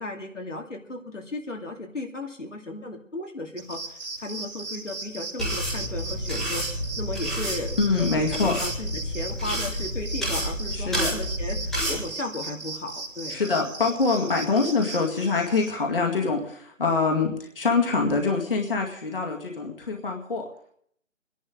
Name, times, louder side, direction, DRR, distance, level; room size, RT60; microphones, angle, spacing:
voice 1, 0.0-6.6 7.0-13.4, left 2 dB, 75° left, 2 dB, 2.5 m, -35 dB
sound 1, 3.6-15.7, right 3 dB, 60° right, 3.0 m, -38 dB
sound 2, 5.4-12.0, equal, ahead, 1.5 m, -30 dB
voice 2, 7.8-8.6 10.7-11.2 13.3-20.5, left 4 dB, 45° left, 1 dB, 2.1 m, -25 dB
27.5 x 11.0 x 3.8 m, 0.64 s
figure-of-eight pair, 150°, 38 cm